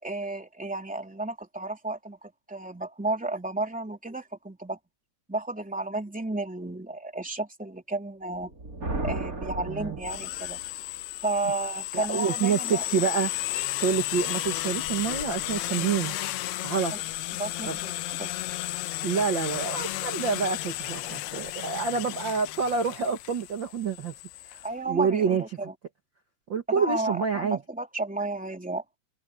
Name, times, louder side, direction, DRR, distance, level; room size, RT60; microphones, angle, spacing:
voice 1, 0.0-4.8 5.3-8.5 9.0-10.6 11.2-12.8 16.9-17.0 17.3-17.9 18.2-18.3 24.6-25.7 26.7-28.8, right 2 dB, ahead, 2.5 m, -32 dB
Thunder, 8.3-10.7, right 2 dB, 25° right, 2.9 m, -34 dB
voice 2, 9.7-10.0 11.9-13.3 13.8-16.2 16.6-16.9 17.7-17.8 19.0-24.1 24.4-24.6 24.9-25.4 26.5-27.6, right 6 dB, 75° right, 1.0 m, -27 dB
sound 1, 10.0-24.7, left 17 dB, 85° left, 2.8 m, -33 dB
omnidirectional pair, 4.5 m